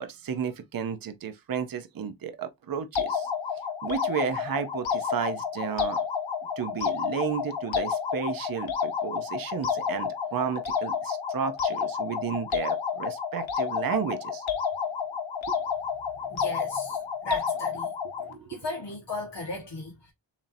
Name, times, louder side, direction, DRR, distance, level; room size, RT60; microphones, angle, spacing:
voice 1, 0.0-3.3 3.8-6.0 6.6-14.4 18.2-18.5, right 7 dB, 50° right, 0.7 m, -33 dB
sound 1, 3.0-18.3, left 7 dB, 85° left, 1.1 m, -30 dB
voice 2, 16.3-17.9 18.5-20.1, left 2 dB, 65° left, 1.6 m, -35 dB
7.2 x 2.8 x 2.6 m
wide cardioid pair, 165°, 45 cm